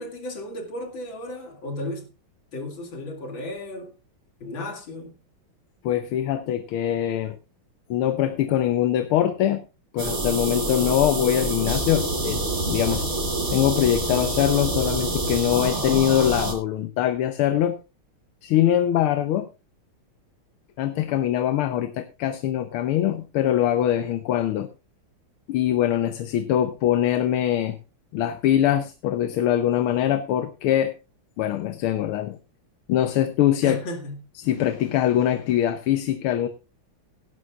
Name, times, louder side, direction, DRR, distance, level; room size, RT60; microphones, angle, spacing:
voice 1, 0.0-2.1 2.5-3.9 4.4-5.1 33.6-34.2, left 1 dB, 65° left, 3.1 m, -34 dB
voice 2, 5.8-7.4 7.9-9.6 9.9-13.0 13.5-17.8 18.4-19.5 20.8-24.7 25.5-27.8 28.1-30.9 31.4-32.4 32.9-33.8 34.4-36.5, left 11 dB, 85° left, 1.7 m, -23 dB
sound 1, 10.0-16.5, right 2 dB, 75° right, 5.3 m, -26 dB
17.5 x 11.0 x 2.4 m
omnidirectional pair, 2.3 m